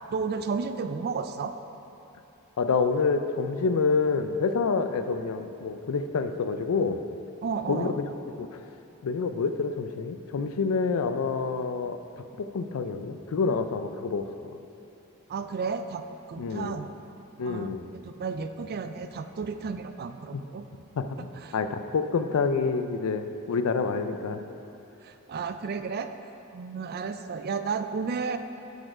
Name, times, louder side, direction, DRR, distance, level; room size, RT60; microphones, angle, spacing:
voice 1, 0.1-1.6 7.4-8.0 15.3-16.9 17.4-20.6 21.4-21.6 25.0-26.1 26.5-28.4, right 5 dB, 45° right, 9 dB, 0.3 m, -32 dB
voice 2, 2.6-7.0 7.7-8.1 8.4-8.6 9.0-14.3 16.4-16.8 17.4-17.9 20.3-20.4 21.0-24.4, left 4 dB, 75° left, 9 dB, 0.4 m, -28 dB
6.9 x 6.2 x 4.9 m, 2.9 s
head